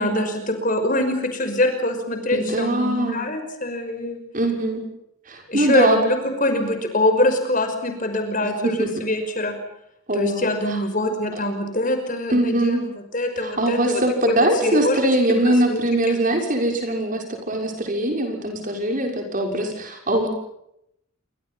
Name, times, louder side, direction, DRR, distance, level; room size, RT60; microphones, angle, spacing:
voice 1, 0.0-4.2 5.5-9.6 10.1-14.4 14.6-15.0 15.3-15.8 16.1-16.2, left 1 dB, 40° left, 6 dB, 5.6 m, -24 dB
voice 2, 2.3-3.3 4.3-4.8 5.3-6.0 8.4-8.9 10.1-10.8 12.3-12.8 13.4-20.3, right 1 dB, 40° right, 3 dB, 6.4 m, -22 dB
29.0 x 26.0 x 5.7 m, 0.79 s
head